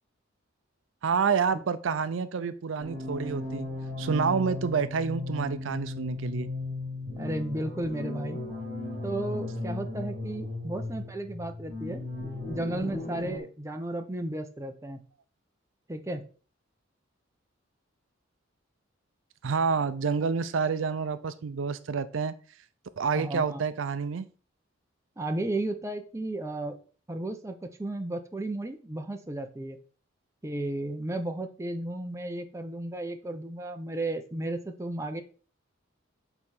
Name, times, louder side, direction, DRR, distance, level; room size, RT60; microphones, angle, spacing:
voice 1, 1.0-3.7 4.0-6.5 19.4-22.3 23.0-24.3, right 5 dB, 75° right, 14 dB, 0.5 m, -28 dB
sound 1, 2.8-13.4, left 2 dB, 45° right, 3.7 m, -36 dB
voice 2, 7.1-8.4 9.0-12.0 12.5-15.0 15.9-16.2 23.1-23.6 25.2-26.8 27.1-29.8 30.4-35.2, right 1 dB, 15° right, 6 dB, 0.7 m, -34 dB
6.8 x 4.7 x 4.3 m, 0.39 s
head